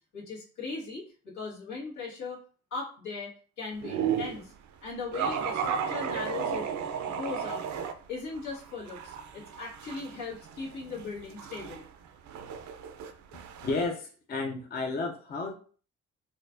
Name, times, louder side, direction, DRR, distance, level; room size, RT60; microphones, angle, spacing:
voice 1, 0.1-2.4 2.7-4.5 4.8-6.7 7.0-7.6 8.1-11.8, left 4 dB, 75° left, -5 dB, 1.6 m, -38 dB
sound 1, 3.8-4.4 5.1-7.9 8.4-13.9, right 7 dB, 70° right, 0.5 m, -34 dB
voice 2, 13.6-15.5, left 3 dB, 30° left, 2 dB, 0.5 m, -32 dB
4.3 x 2.4 x 2.5 m, 0.42 s
cardioid pair, 90°, 30 cm